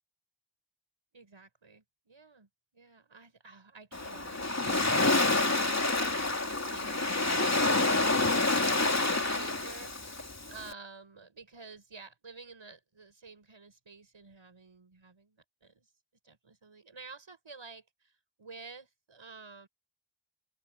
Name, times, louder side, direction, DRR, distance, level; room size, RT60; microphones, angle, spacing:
voice 1, 1.1-2.5 2.7-15.9 16.2-19.7, right 4 dB, 80° right, 6.3 m, -51 dB
Waves surf, 3.9-10.7, left 2 dB, 35° left, 3.0 m, -28 dB
open air
wide cardioid pair, 50°, 46 cm